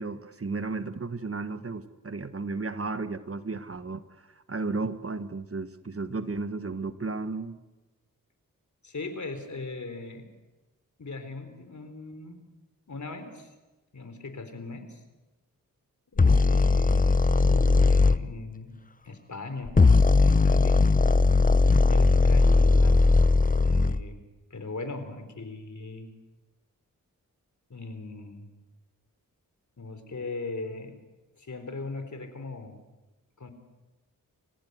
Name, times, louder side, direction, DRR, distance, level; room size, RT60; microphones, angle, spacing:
voice 1, 0.0-7.6, right 3 dB, 40° right, 11 dB, 1.5 m, -34 dB
voice 2, 8.8-10.3 11.0-12.5 12.9-13.5 13.9-15.0 16.1-18.8 19.0-20.9 21.9-23.2 23.6-24.2 24.5-26.1 27.7-28.5 29.8-31.0 31.3-32.8 33.4-33.5, left 3 dB, 55° left, 9 dB, 4.0 m, -39 dB
sound 1, 16.2-18.2 19.7-24.0, left 3 dB, 25° left, 0.8 m, -19 dB
29.0 x 15.5 x 8.1 m, 1.1 s
cardioid pair, 50°, 34 cm